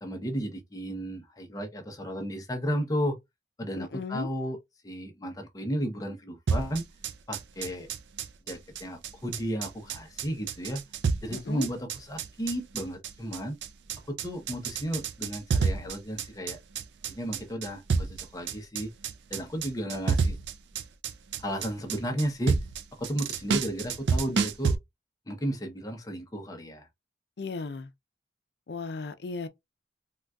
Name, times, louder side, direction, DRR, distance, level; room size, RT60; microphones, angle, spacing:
voice 1, 0.0-3.2 3.6-4.6 4.8-6.9 7.3-7.9 8.5-10.8 11.2-13.6 14.1-16.6 17.1-18.9 19.3-20.4 21.4-22.6 23.0-24.8 25.3-26.9, equal, 20° left, 0.6 m, -33 dB
voice 2, 3.8-4.3 11.3-11.7 27.4-27.9 28.7-29.5, left 4 dB, 70° left, 0.5 m, -36 dB
sound 1, 6.5-24.8, right 5 dB, 75° right, 0.4 m, -30 dB
3.8 x 2.3 x 2.2 m
head